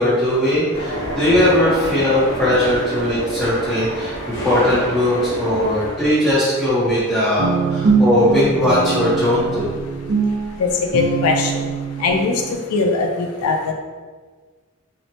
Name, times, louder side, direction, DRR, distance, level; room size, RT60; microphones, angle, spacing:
voice 1, 0.0-9.7, left 1 dB, ahead, -12 dB, 0.6 m, -19 dB
sound 1, 0.7-5.9, equal, 60° left, 1.0 m, -27 dB
Guitar, 7.4-12.6, right 5 dB, 55° right, 0.5 m, -22 dB
voice 2, 10.6-11.6 12.0-12.3 12.7-13.7, left 4 dB, 90° left, 2 dB, 0.4 m, -20 dB
2.9 x 2.0 x 2.6 m, 1.4 s
head